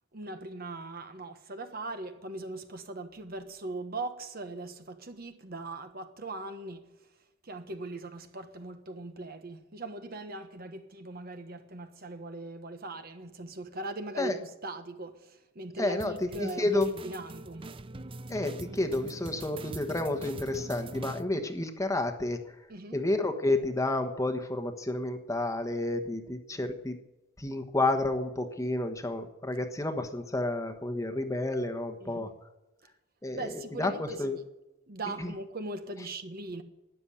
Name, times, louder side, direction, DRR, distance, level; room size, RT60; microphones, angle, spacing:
voice 1, 0.1-7.1 7.4-17.8 22.7-23.0 32.0-32.3 33.3-34.4 34.9-36.6, right 2 dB, 45° right, 1.3 m, -40 dB
voice 2, 15.8-16.1 16.4-16.9 18.3-22.6 22.9-27.0 27.4-32.3 33.2-34.4 35.2-35.3, left 2 dB, 15° left, 1.2 m, -30 dB
sound 1, 16.0-21.2, right 2 dB, 25° right, 0.5 m, -42 dB
13.0 x 10.0 x 9.9 m
head